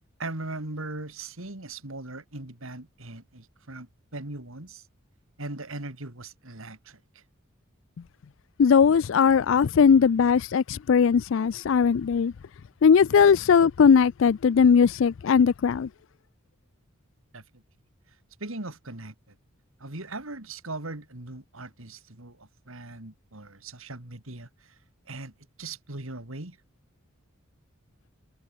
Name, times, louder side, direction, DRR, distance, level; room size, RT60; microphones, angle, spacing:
voice 1, 0.2-4.9 5.4-7.2 17.3-17.6 18.4-19.3 19.8-24.8 25.1-26.6, right 2 dB, 75° right, 3.0 m, -39 dB
voice 2, 8.6-12.3 12.8-15.9, left 6 dB, 65° left, 0.4 m, -19 dB
head